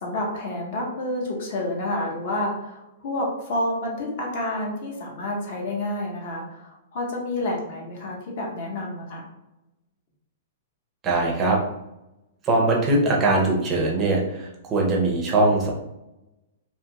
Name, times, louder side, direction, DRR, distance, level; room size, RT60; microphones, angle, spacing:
voice 1, 0.0-9.3, left 1 dB, 45° left, 0 dB, 0.7 m, -29 dB
voice 2, 11.0-11.6 12.4-15.7, right 2 dB, 15° right, -1 dB, 0.5 m, -21 dB
2.6 x 2.3 x 2.8 m, 0.94 s
hypercardioid pair, 170°, 0 cm